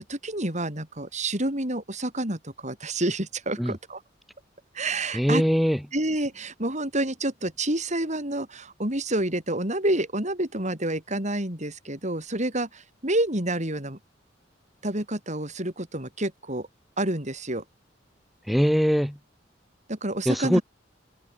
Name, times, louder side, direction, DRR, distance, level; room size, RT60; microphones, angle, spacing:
voice 1, 0.0-4.0 4.7-5.4 5.9-14.0 14.8-16.7 17.0-17.6 19.9-20.6, right 1 dB, 40° right, 8.0 m, -28 dB
voice 2, 5.1-5.8 18.5-19.2 20.2-20.6, equal, ahead, 4.7 m, -22 dB
head